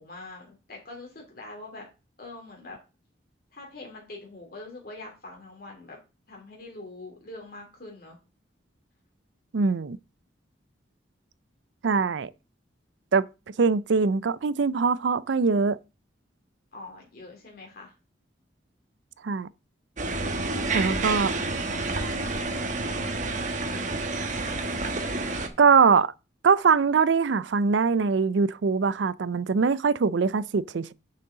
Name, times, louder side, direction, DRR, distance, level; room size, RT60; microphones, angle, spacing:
voice 1, 0.0-1.8 2.2-2.8 3.5-6.0 6.3-8.2 16.7-17.9 20.6-23.8, left 2 dB, 50° left, 2.7 m, -44 dB
voice 2, 9.5-10.0 11.8-12.3 13.1-13.2 13.6-15.8 19.2-19.5 20.7-21.3 25.6-26.1 26.4-30.9, right 5 dB, 75° right, 0.4 m, -22 dB
sound 1, 20.0-25.5, right 2 dB, 40° right, 1.1 m, -29 dB
9.2 x 6.5 x 3.9 m
head